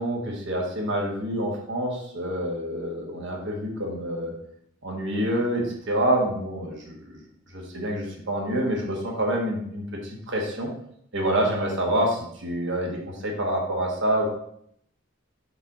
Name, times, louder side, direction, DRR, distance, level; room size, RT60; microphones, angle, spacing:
voice 1, 0.0-4.3 4.8-7.2 7.5-10.7 11.1-14.3, right 1 dB, 60° right, 0 dB, 1.4 m, -27 dB
5.3 x 4.1 x 4.9 m, 0.70 s
head